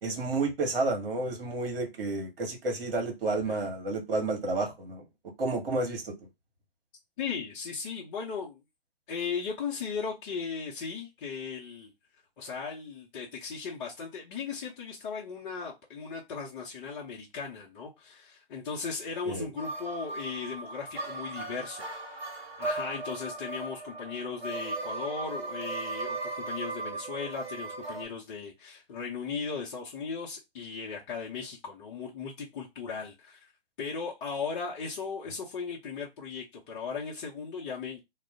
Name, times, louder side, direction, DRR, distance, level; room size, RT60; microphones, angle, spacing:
voice 1, 0.0-5.0 5.4-6.1 19.3-19.4, right 3 dB, 65° right, 1.2 m, -30 dB
voice 2, 7.2-8.6 9.1-11.9 12.4-21.9 22.6-33.5 33.8-38.0, left 5 dB, 30° left, 0.6 m, -37 dB
sound 1, 19.6-28.0, right 2 dB, 80° right, 0.9 m, -37 dB
2.4 x 2.1 x 3.4 m
figure-of-eight pair, 120°, 30 cm